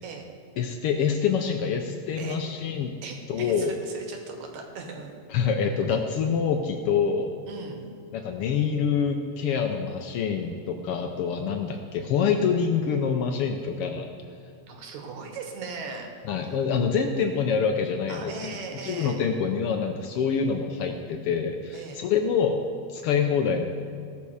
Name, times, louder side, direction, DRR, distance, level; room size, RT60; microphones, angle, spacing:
voice 1, 0.6-2.9 3.3-3.8 5.3-7.3 8.1-14.1 16.3-18.3 18.8-22.6 22.9-23.6, left 6 dB, 85° left, 5 dB, 1.2 m, -26 dB
voice 2, 3.0-5.2 7.5-7.9 14.7-16.1 18.1-19.2 21.7-22.0, right 4 dB, 75° right, 3 dB, 2.7 m, -38 dB
17.0 x 7.1 x 4.9 m, 2.3 s
omnidirectional pair, 3.4 m